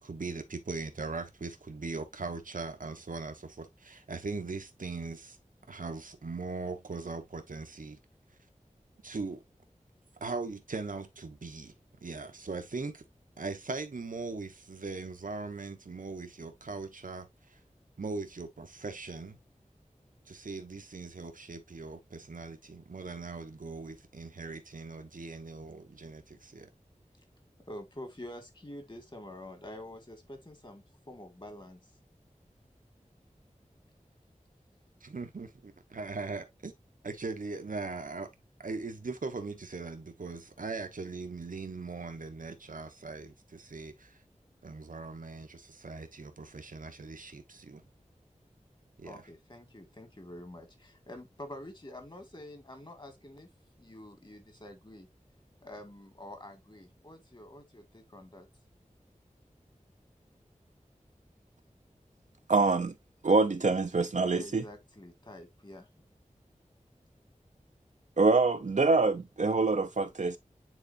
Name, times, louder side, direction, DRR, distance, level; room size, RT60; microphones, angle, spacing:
voice 1, 0.0-5.4 5.7-8.0 9.0-9.4 10.2-11.7 12.0-13.0 13.4-17.6 18.0-19.4 20.3-26.7 35.0-36.7 37.0-38.3 38.6-44.2 44.6-47.8 49.0-49.2, right 3 dB, 85° right, 1.1 m, -40 dB
voice 2, 27.7-31.9 49.0-53.5 53.8-55.1 55.6-58.5 64.3-65.9, left 1 dB, 35° left, 2.1 m, -47 dB
voice 3, 62.5-62.9 63.2-64.6 68.2-70.4, right 3 dB, 65° right, 0.6 m, -25 dB
9.4 x 3.8 x 2.6 m
wide cardioid pair, 60°, 13 cm